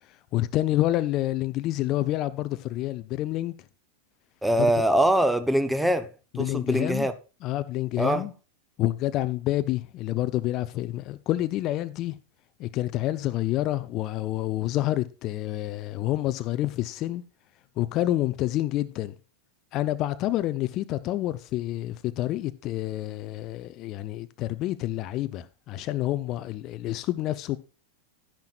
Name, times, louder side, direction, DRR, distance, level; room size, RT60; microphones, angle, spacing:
voice 1, 0.1-3.6 4.6-4.7 6.3-7.1 7.4-8.3 8.8-12.2 12.6-17.2 17.8-19.1 19.7-27.6, left 15 dB, 35° left, 0.6 m, -28 dB
voice 2, 4.4-6.1 6.3-7.1 8.0-8.2, right 1 dB, 5° right, 0.9 m, -23 dB
12.0 x 10.5 x 2.5 m
figure-of-eight pair, 90°, 0 cm